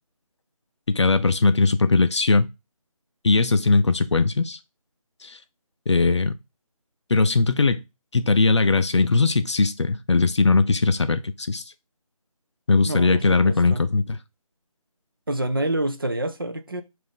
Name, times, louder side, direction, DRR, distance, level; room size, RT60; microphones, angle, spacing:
voice 1, 0.9-2.5 3.2-4.6 5.2-5.4 5.9-6.3 7.1-7.8 8.1-11.6 12.7-14.2, left 3 dB, 50° left, 0.4 m, -20 dB
voice 2, 12.9-13.9 15.3-16.8, right 1 dB, 40° right, 0.4 m, -27 dB
5.0 x 2.5 x 3.7 m
figure-of-eight pair, 170°, 18 cm